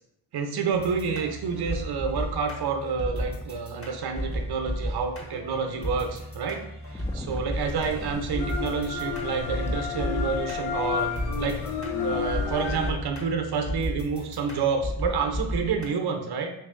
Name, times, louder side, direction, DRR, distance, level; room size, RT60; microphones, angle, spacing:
voice 1, 0.3-6.6 6.9-11.7 12.0-16.5, right 5 dB, 55° right, 4 dB, 0.7 m, -29 dB
sound 1, 0.7-15.9, equal, 30° left, 1.1 m, -34 dB
sound 2, 6.8-12.2, left 1 dB, 5° left, 0.4 m, -44 dB
sound 3, 7.0-12.9, left 6 dB, 75° left, 0.7 m, -32 dB
3.0 x 2.6 x 3.6 m, 0.76 s
supercardioid pair, 50°, 47 cm